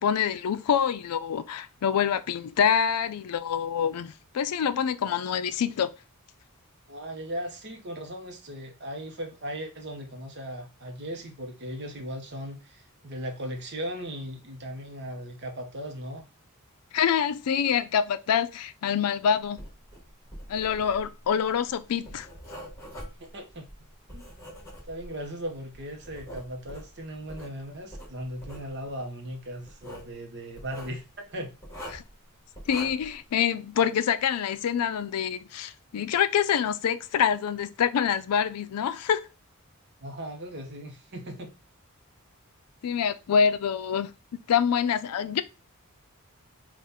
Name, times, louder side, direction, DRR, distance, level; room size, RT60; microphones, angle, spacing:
voice 1, 0.0-5.9 16.9-19.6 20.5-22.3 31.9-32.0 32.7-39.2 42.8-44.1 44.5-45.4, left 7 dB, 85° left, 0.4 m, -26 dB
voice 2, 6.9-16.2 23.2-23.7 24.1-24.3 24.9-31.5 40.0-41.5, equal, 50° right, 0.9 m, -37 dB
Writing, 19.6-25.3 25.7-27.5 27.9-28.7 29.7-30.1 30.5-31.0 31.6-32.1 32.5-33.1, equal, 15° left, 2.0 m, -43 dB
3.6 x 2.4 x 4.1 m
head